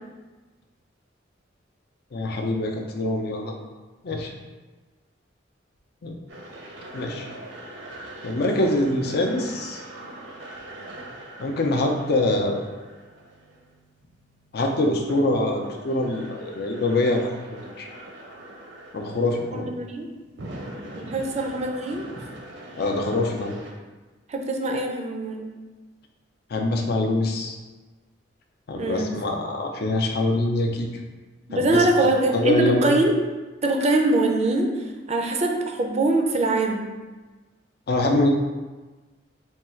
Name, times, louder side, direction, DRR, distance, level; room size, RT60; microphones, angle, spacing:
voice 1, 2.1-3.6 4.0-4.3 6.0-6.2 6.9-7.3 8.2-9.8 11.4-12.6 14.5-17.9 18.9-19.7 22.8-23.5 26.5-27.6 28.7-30.9 31.5-32.1 32.3-33.0 37.9-38.3, left 2 dB, 55° left, 2 dB, 0.5 m, -24 dB
sound 1, 6.3-23.7, right 1 dB, 75° right, 0.7 m, -42 dB
voice 2, 19.5-20.1 21.0-22.1 24.3-25.5 28.7-29.2 31.5-33.2 33.6-36.9, right 2 dB, 35° right, 2 dB, 0.4 m, -23 dB
3.6 x 2.3 x 4.3 m, 1.2 s
head